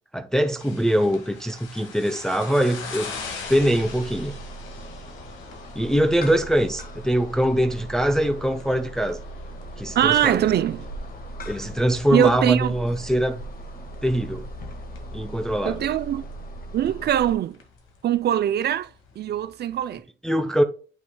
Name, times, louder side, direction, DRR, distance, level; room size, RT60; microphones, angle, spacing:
voice 1, 0.1-3.1 3.5-4.4 5.8-9.2 9.8-10.4 11.5-13.4 14.0-14.5 15.1-15.9 20.2-20.6, equal, 5° left, 0.6 m, -23 dB
sound 1, 0.6-20.0, left 4 dB, 90° left, 1.9 m, -43 dB
sound 2, 3.4-17.3, right 1 dB, 50° left, 1.7 m, -39 dB
voice 2, 9.9-10.9 12.1-12.7 15.7-16.3 16.7-17.6 18.0-20.0, right 11 dB, 55° right, 0.4 m, -22 dB
7.9 x 5.8 x 2.2 m
cardioid pair, 90°, 20 cm